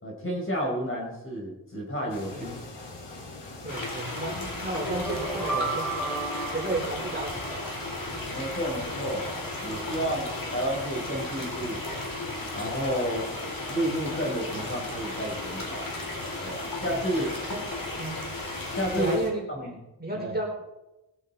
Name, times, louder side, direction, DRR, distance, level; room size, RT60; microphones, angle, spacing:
voice 1, 0.0-2.5 8.3-9.3 9.6-11.8 12.5-13.3 13.7-15.9 16.4-17.3 18.7-19.2 19.5-19.8 20.1-20.3, equal, 30° left, -1 dB, 4.5 m, -31 dB
sound 1, 2.1-19.3, left 2 dB, 80° left, 3.5 m, -42 dB
voice 2, 3.6-6.0 6.5-7.6 9.9-10.1 16.9-17.6 18.0-18.2 18.9-19.7 20.0-20.5, right 2 dB, 25° right, -3 dB, 4.6 m, -33 dB
sound 2, 3.7-19.2, left 2 dB, 50° left, 4.4 m, -35 dB
sound 3, 4.8-7.9, right 3 dB, ahead, 4.4 m, -34 dB
20.5 x 11.5 x 4.3 m, 0.96 s
wide cardioid pair, 150°, 42 cm